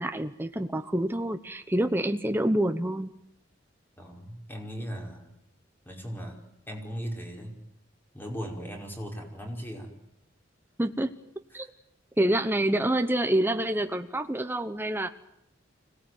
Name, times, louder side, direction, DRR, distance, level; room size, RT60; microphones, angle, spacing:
voice 1, 0.0-3.1 10.8-11.1 11.5-11.6 12.2-15.1, right 1 dB, 10° right, 7 dB, 1.0 m, -27 dB
voice 2, 4.0-5.3 5.9-6.4 6.7-7.5 8.1-9.9 11.5-11.7, equal, 10° left, 2 dB, 5.3 m, -38 dB
25.5 x 18.0 x 9.4 m, 0.79 s
head